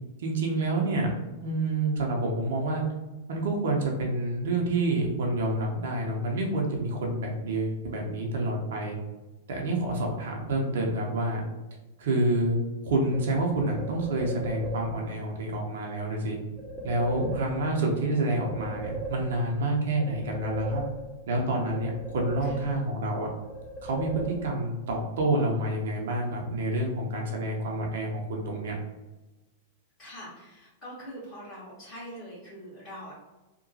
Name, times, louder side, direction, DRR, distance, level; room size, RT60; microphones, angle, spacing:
voice 1, 0.2-1.1 1.4-2.8 3.3-9.0 9.5-11.4 12.0-16.4 16.8-20.8 21.3-23.3 23.8-24.1 24.4-28.7, right 2 dB, 60° right, 0 dB, 0.5 m, -28 dB
sound 1, 13.1-15.1 16.6-17.9 18.3-19.6 20.0-21.4 21.7-23.1 23.4-24.8, right 2 dB, 15° right, 0.7 m, -38 dB
voice 2, 22.4-22.8 30.0-33.1, equal, 30° left, -11 dB, 1.3 m, -43 dB
2.9 x 2.1 x 2.7 m, 1.1 s
figure-of-eight pair, 95°, 0 cm